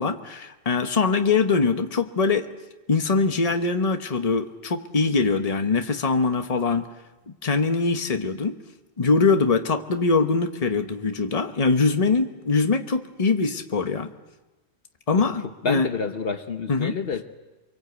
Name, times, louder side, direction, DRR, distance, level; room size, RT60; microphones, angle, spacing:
voice 1, 0.0-2.5 2.9-6.9 7.3-8.6 9.0-14.1 15.1-15.9 16.7-16.9, left 4 dB, 35° left, 7 dB, 1.2 m, -23 dB
voice 2, 15.2-17.2, left 5 dB, 60° left, 8 dB, 1.2 m, -29 dB
25.0 x 23.5 x 8.2 m, 1.1 s
omnidirectional pair, 1.1 m